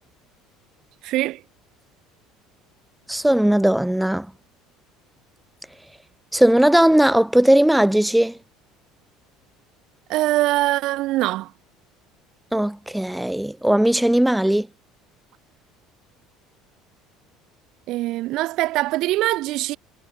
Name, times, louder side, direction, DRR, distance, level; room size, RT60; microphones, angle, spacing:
voice 1, 1.0-1.4 10.1-11.5 17.9-19.8, right 17 dB, 65° right, 1.3 m, -22 dB
voice 2, 3.1-4.3 6.3-8.4 12.5-14.7, right 1 dB, 5° right, 1.7 m, -18 dB
supercardioid pair, 90°, 0 cm